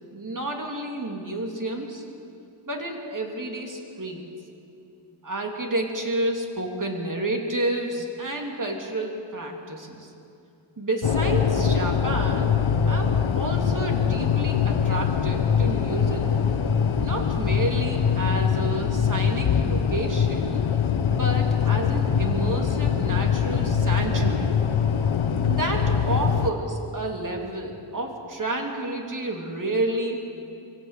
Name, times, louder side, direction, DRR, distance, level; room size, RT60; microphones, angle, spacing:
voice 1, 0.1-2.0 2.7-4.3 5.2-10.1 10.8-16.4 17.0-20.7 21.1-24.6 25.5-30.1, right 2 dB, 40° right, 2 dB, 2.9 m, -30 dB
sound 1, 11.0-26.5, left 7 dB, 70° left, 1.0 m, -23 dB
23.0 x 17.0 x 8.3 m, 2.7 s
wide cardioid pair, 95°, 49 cm